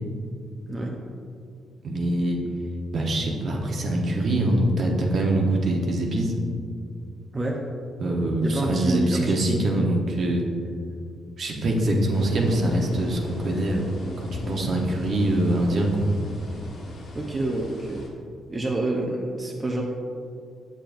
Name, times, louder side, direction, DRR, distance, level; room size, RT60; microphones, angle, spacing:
voice 1, 1.8-2.4 2.9-6.3 8.0-10.4 11.4-13.9 14.2-16.1, right 1 dB, 55° right, 0 dB, 0.9 m, -24 dB
voice 2, 8.4-9.3 17.1-18.0 18.5-19.8, right 2 dB, 25° right, -1 dB, 0.6 m, -27 dB
sound 1, 12.1-18.1, left 1 dB, 80° left, 1.6 m, -36 dB
7.4 x 6.9 x 2.6 m, 2.3 s
cardioid pair, 110°, 0 cm